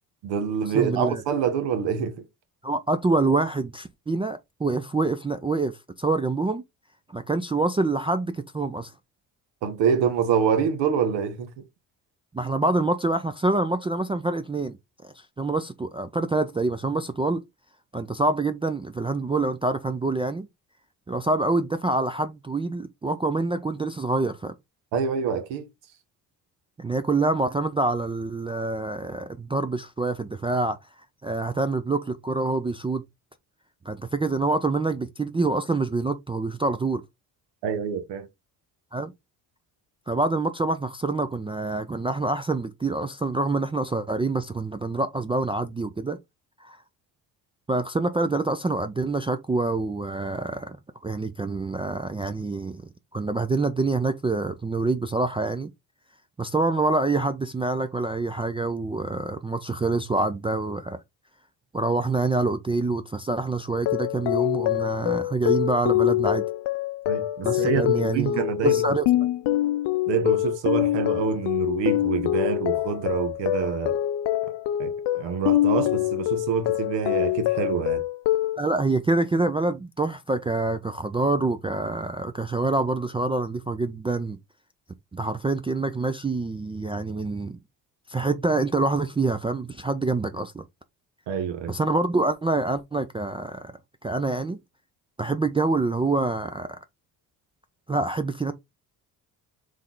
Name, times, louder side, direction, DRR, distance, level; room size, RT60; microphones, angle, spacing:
voice 1, 0.2-2.2 9.6-11.5 24.9-25.7 37.6-38.3 67.1-68.8 70.1-74.0 74.8-78.0 91.3-91.7, right 7 dB, 75° right, 1.2 m, -26 dB
voice 2, 0.7-1.2 2.6-6.6 7.1-8.9 12.3-14.7 15.0-17.4 17.9-20.5 21.1-24.5 26.8-30.8 31.2-33.0 33.9-37.0 38.9-39.1 40.1-46.2 46.6-46.8 47.7-50.8 51.0-52.8 53.1-55.7 56.4-61.0 61.7-66.4 67.4-69.1 78.6-84.4 85.1-87.6 88.1-90.6 91.7-93.7 94.0-94.6 95.2-96.8 97.9-98.5, right 3 dB, 15° right, 0.4 m, -26 dB
sound 1, 63.7-78.6, left 14 dB, 70° left, 0.6 m, -25 dB
3.6 x 3.3 x 3.8 m
supercardioid pair, 60°, 44 cm